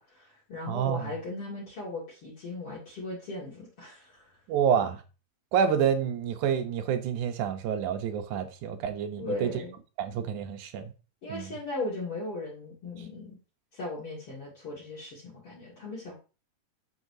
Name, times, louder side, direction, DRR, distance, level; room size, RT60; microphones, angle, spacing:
voice 1, 0.0-4.3 9.2-9.8 11.2-13.4 13.7-16.1, left 2 dB, 45° left, 3.0 m, -38 dB
voice 2, 0.7-1.1 4.5-5.0 5.5-9.5 10.0-10.9 11.3-11.5, right 8 dB, 70° right, 2.3 m, -28 dB
7.8 x 6.7 x 2.7 m
omnidirectional pair, 3.8 m